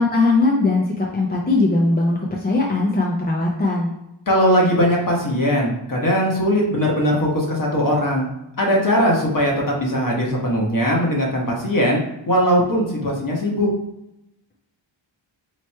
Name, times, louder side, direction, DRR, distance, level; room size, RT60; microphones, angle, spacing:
voice 1, 0.0-3.9, left 2 dB, 20° left, -2 dB, 0.6 m, -19 dB
voice 2, 4.3-8.3 8.6-12.0 12.3-13.7, equal, 45° left, -2 dB, 1.2 m, -19 dB
3.3 x 3.1 x 4.3 m, 0.86 s
wide cardioid pair, 140°, 47 cm